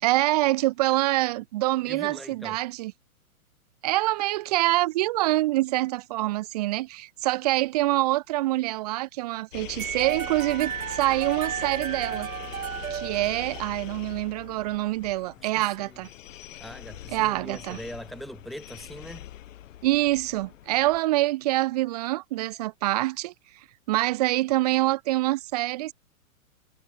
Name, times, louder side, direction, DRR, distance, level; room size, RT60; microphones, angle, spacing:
voice 1, 0.0-2.9 3.8-12.3 12.9-16.1 17.1-17.8 19.8-23.3 23.9-25.9, right 17 dB, 30° right, 0.5 m, -25 dB
voice 2, 1.8-2.6 15.4-16.0 16.6-19.3, equal, ahead, 5.6 m, -41 dB
sound 1, 9.5-21.0, left 12 dB, 60° left, 2.0 m, -43 dB
sound 2, 9.8-13.9, right 10 dB, 70° right, 2.2 m, -33 dB
hypercardioid pair, 130°, 43 cm